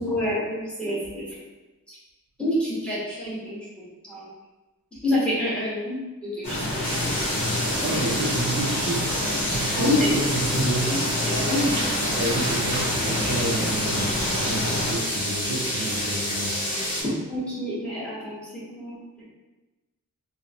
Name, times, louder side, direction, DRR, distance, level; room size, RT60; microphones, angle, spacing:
voice 1, 0.0-1.4 1.9-2.0 2.4-4.3 5.0-7.1 9.7-10.1 11.3-11.7 17.3-19.2, left 1 dB, 5° left, -8 dB, 1.0 m, -28 dB
sound 1, 6.4-14.9, left 1 dB, 85° left, 0.8 m, -28 dB
sound 2, 6.8-17.0, equal, 25° left, 1.4 m, -29 dB
voice 2, 7.8-11.0 12.0-16.6, right 2 dB, 50° right, -3 dB, 0.4 m, -30 dB
sound 3, 10.6-14.0 14.3-16.5, equal, 45° left, 1.4 m, -36 dB
2.8 x 2.0 x 2.5 m, 1.1 s
wide cardioid pair, 55°, 35 cm